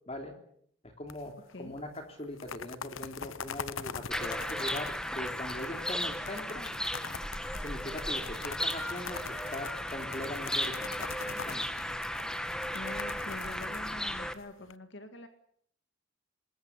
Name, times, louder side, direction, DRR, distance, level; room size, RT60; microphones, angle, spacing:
voice 1, 0.8-6.7 7.6-11.7, left 1 dB, 30° left, 4 dB, 3.2 m, -41 dB
sound 1, 1.1-1.5 1.8-1.9 2.2-14.7, left 6 dB, 80° left, 0.9 m, -43 dB
sound 2, 4.1-14.3, equal, 5° left, 1.4 m, -35 dB
voice 2, 12.7-15.3, left 2 dB, 60° left, 7 dB, 2.0 m, -45 dB
25.0 x 20.5 x 8.1 m, 0.68 s
head